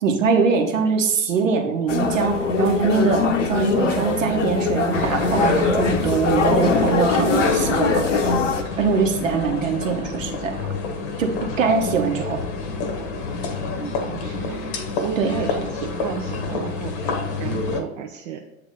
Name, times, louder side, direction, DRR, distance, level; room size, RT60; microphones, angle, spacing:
voice 1, 0.0-3.2 3.5-8.1 8.8-10.6 11.2-12.4 15.2-15.3, right 5 dB, 65° right, 3 dB, 1.1 m, -22 dB
sound 1, 1.9-8.6, left 4 dB, 60° left, 0.8 m, -21 dB
sound 2, 4.9-17.8, left 3 dB, 35° left, 1.0 m, -29 dB
voice 2, 14.1-14.6 14.9-18.4, right 8 dB, 30° right, 3 dB, 0.4 m, -33 dB
8.4 x 3.0 x 5.3 m, 1.0 s
figure-of-eight pair, 95°, 41 cm